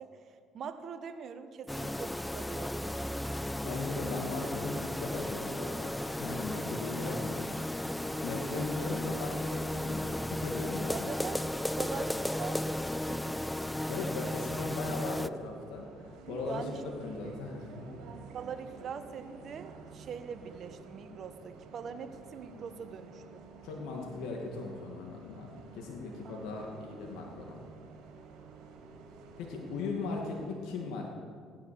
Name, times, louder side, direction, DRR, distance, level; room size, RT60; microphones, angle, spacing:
voice 1, 0.0-3.0 8.5-8.8 10.9-13.6 16.5-16.8 18.3-23.4 26.2-26.6, right 6 dB, 55° right, 9 dB, 1.3 m, -43 dB
sound 1, 1.7-15.3, left 1 dB, 5° left, 0.4 m, -35 dB
voice 2, 3.6-7.7 8.2-11.1 13.9-18.0 23.6-27.6 29.4-31.1, left 3 dB, 80° left, 0 dB, 2.2 m, -38 dB
Bus, 11.3-30.6, right 4 dB, 85° right, 2.5 m, -51 dB
16.0 x 10.5 x 6.9 m, 2.1 s
supercardioid pair, 85°, 0 cm